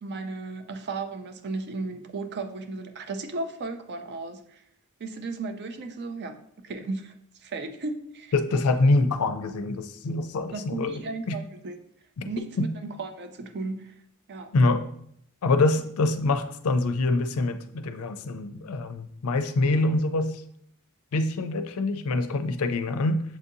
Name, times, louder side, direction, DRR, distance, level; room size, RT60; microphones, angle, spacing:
voice 1, 0.0-4.6 5.0-7.1 7.4-8.3 10.5-11.7 12.2-13.9 14.3-14.5, right 3 dB, 50° right, 7 dB, 0.4 m, -35 dB
voice 2, 8.3-11.4 12.2-12.3 12.6-12.7 14.5-14.8 15.4-20.4 21.1-23.2, left 2 dB, 70° left, 9 dB, 0.4 m, -25 dB
7.3 x 2.7 x 2.6 m, 0.68 s
head